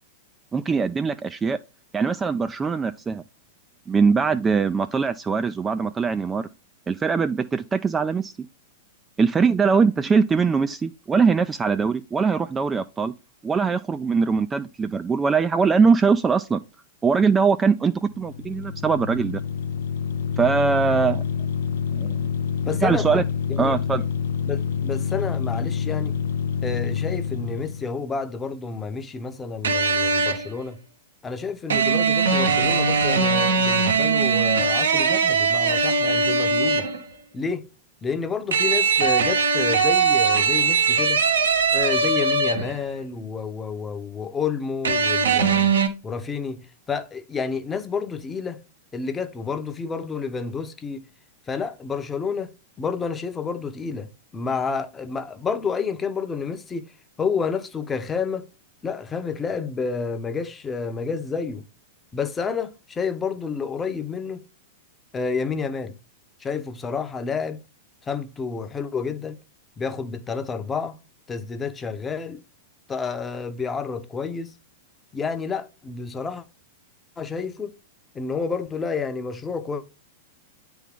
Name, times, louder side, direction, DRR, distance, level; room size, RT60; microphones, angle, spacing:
voice 1, 0.5-1.6 1.9-3.2 3.9-6.5 6.9-8.3 9.2-13.1 13.4-16.6 17.0-19.4 20.4-21.2 21.9-22.3 22.8-23.2 23.6-24.0, right 5 dB, 15° right, 0.3 m, -21 dB
sound 1, 18.1-27.9, left 7 dB, 70° left, 0.4 m, -27 dB
voice 2, 22.6-23.1 23.5-23.7 24.4-26.2 26.6-30.8 31.2-36.8 37.3-37.7 38.0-41.2 41.7-45.7 46.0-48.6 48.9-51.1 51.5-52.5 52.8-56.9 57.2-58.5 58.8-61.6 62.1-64.4 65.1-66.0 66.4-67.6 68.0-69.4 69.8-71.0 71.3-72.4 72.9-74.5 75.1-76.4 77.2-77.7 78.1-79.8, left 5 dB, 20° left, 0.7 m, -29 dB
sound 2, 29.6-30.5 31.7-37.0 38.5-42.8 44.8-45.9, right 5 dB, 75° right, 0.9 m, -20 dB
9.0 x 3.5 x 3.6 m
figure-of-eight pair, 100°, 0 cm